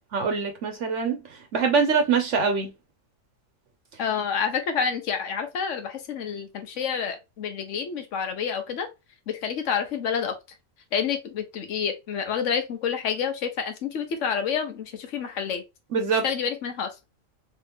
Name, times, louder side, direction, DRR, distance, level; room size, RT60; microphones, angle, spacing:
voice 1, 0.1-1.2 1.5-2.7 15.9-16.2, right 5 dB, 70° right, 1.0 m, -23 dB
voice 2, 4.0-8.9 9.3-10.3 10.9-15.6 16.2-16.9, left 7 dB, 70° left, 1.2 m, -28 dB
3.2 x 3.0 x 3.4 m
omnidirectional pair, 1.3 m